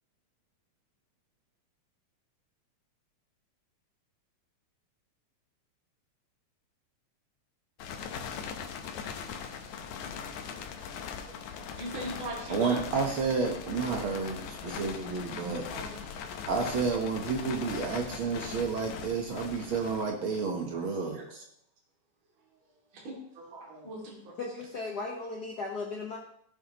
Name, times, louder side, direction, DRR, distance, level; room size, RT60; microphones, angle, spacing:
sound 1, 7.8-20.6, left 6 dB, 85° left, 2.3 m, -40 dB
voice 1, 11.8-12.8 13.9-14.0 15.7-15.9 19.6-19.8 21.0-21.3 22.9-24.3, right 1 dB, 45° right, -4 dB, 3.2 m, -40 dB
voice 2, 12.5-15.6 16.0-16.2 16.5-21.4, right 5 dB, 60° right, 3 dB, 1.4 m, -31 dB
voice 3, 24.4-26.2, left 3 dB, 65° left, -1 dB, 1.0 m, -36 dB
16.0 x 7.8 x 3.0 m, 0.67 s
omnidirectional pair, 3.4 m